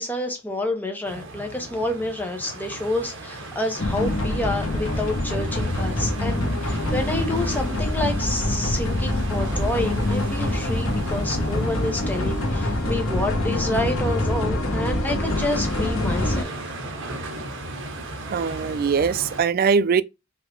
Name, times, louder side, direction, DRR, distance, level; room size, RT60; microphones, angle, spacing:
voice 1, 0.0-16.6, left 1 dB, 10° left, 1.0 m, -28 dB
sound 1, 1.0-19.4, right 2 dB, 60° right, 1.2 m, -36 dB
sound 2, 3.8-16.4, left 1 dB, 70° left, 1.3 m, -25 dB
voice 2, 18.3-20.0, right 6 dB, 45° right, 0.3 m, -21 dB
5.3 x 2.8 x 3.2 m
head